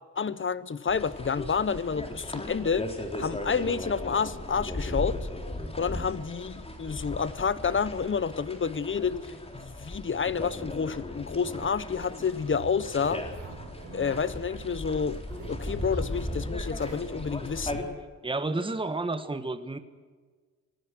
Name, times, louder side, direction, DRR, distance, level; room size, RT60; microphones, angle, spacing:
voice 1, 0.2-2.9 3.2-5.3 5.8-13.2 13.9-15.2 15.5-17.8, left 6 dB, 40° left, 16 dB, 1.1 m, -29 dB
sound 1, 0.9-17.8, left 1 dB, 20° left, 4.0 m, -37 dB
sound 2, 12.0-17.0, right 5 dB, 85° right, 4.1 m, -46 dB
voice 2, 18.2-19.8, right 2 dB, 15° right, 9 dB, 1.6 m, -31 dB
26.0 x 18.5 x 6.2 m, 1.5 s
cardioid pair, 80°, 30 cm